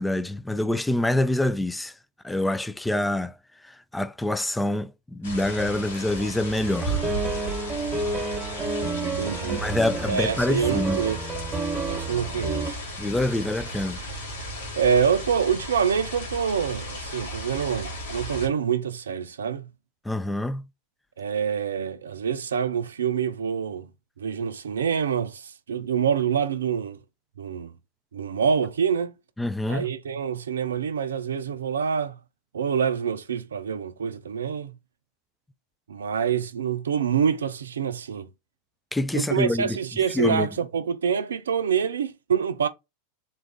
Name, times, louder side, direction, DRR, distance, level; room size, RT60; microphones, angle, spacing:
voice 1, 0.0-1.9 2.2-3.3 3.6-7.1 9.4-11.0 13.0-14.0 20.1-20.6 29.4-29.9 38.9-39.8 40.1-40.5, left 1 dB, 5° left, 0.4 m, -26 dB
sound 1, 5.2-18.5, right 1 dB, 75° left, 1.6 m, -35 dB
sound 2, 6.6-12.7, right 3 dB, 20° right, 1.3 m, -30 dB
voice 2, 9.0-9.6 10.1-11.2 11.9-12.8 14.7-19.7 21.2-23.9 24.2-27.0 27.4-27.7 28.1-29.1 29.7-32.2 32.5-34.8 35.9-38.3 39.1-42.7, right 7 dB, 85° right, 0.4 m, -26 dB
3.9 x 2.5 x 3.5 m
hypercardioid pair, 95°, 0 cm